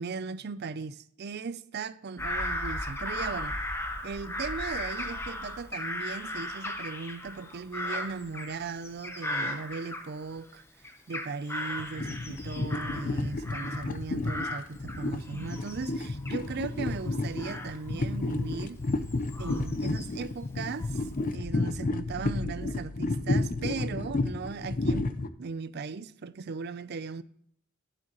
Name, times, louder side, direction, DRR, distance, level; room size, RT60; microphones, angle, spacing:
voice 1, 0.0-3.5 4.0-10.6 11.1-18.8 19.4-21.0 21.3-27.2, right 4 dB, 50° right, 0.4 m, -38 dB
Bird vocalization bird call bird song / Crow, 2.2-10.5 10.8-14.0 14.2-20.3 20.8-21.4, left 1 dB, 10° left, 0.9 m, -37 dB
sound 1, 11.8-25.3, left 2 dB, 40° left, 0.5 m, -31 dB
11.0 x 7.7 x 3.0 m
head